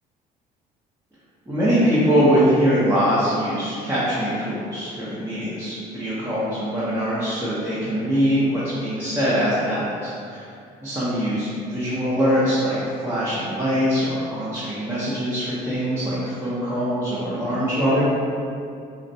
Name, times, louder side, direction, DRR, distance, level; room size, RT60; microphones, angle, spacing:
voice 1, 1.5-10.5 10.8-18.0, equal, 15° right, -11 dB, 0.5 m, -22 dB
2.5 x 2.0 x 2.6 m, 2.4 s
cardioid pair, 110°, 17 cm